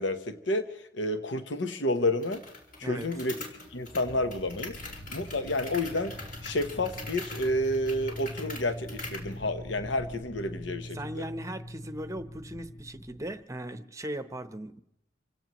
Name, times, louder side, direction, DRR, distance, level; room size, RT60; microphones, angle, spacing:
voice 1, 0.0-2.4 2.8-3.4 3.7-11.2, left 1 dB, 80° left, 9 dB, 1.0 m, -30 dB
sound 1, 2.2-9.3, left 2 dB, 50° left, 4.8 m, -43 dB
sound 2, 4.0-13.4, equal, 10° left, 0.6 m, -43 dB
voice 2, 10.9-14.8, right 1 dB, 15° right, 10 dB, 0.9 m, -38 dB
27.0 x 17.0 x 3.1 m, 0.79 s
head